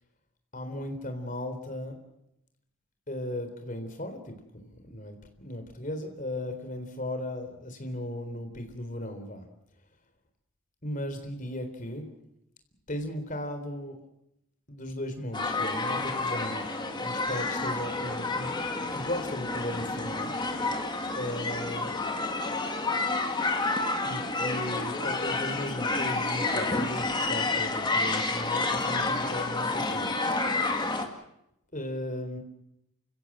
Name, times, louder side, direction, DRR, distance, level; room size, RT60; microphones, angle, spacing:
voice 1, 0.5-2.0 3.1-9.5 10.8-12.0 12.9-14.0 14.7-16.7 17.0-20.3 21.1-22.0 24.0-30.1 31.7-32.4, left 1 dB, 35° left, 7 dB, 3.8 m, -36 dB
sound 1, 15.3-31.1, left 3 dB, 20° left, 2.0 m, -29 dB
29.0 x 16.5 x 7.7 m, 0.83 s
head